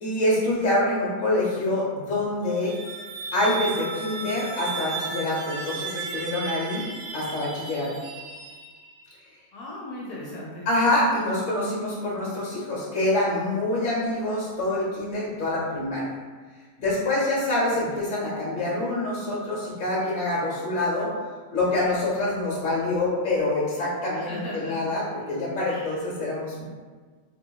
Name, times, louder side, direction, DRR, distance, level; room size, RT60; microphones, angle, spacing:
voice 1, 0.0-2.7 3.3-6.8 7.1-7.9 10.7-16.0 16.8-21.1 21.5-26.6, left 1 dB, 35° left, -6 dB, 1.0 m, -26 dB
sound 1, 2.4-9.1, right 4 dB, 85° right, 1.1 m, -35 dB
voice 2, 9.5-10.7 17.7-17.9 24.1-24.9 25.7-26.0, left 1 dB, 75° left, -5 dB, 1.1 m, -38 dB
3.4 x 2.8 x 2.3 m, 1.5 s
omnidirectional pair, 1.7 m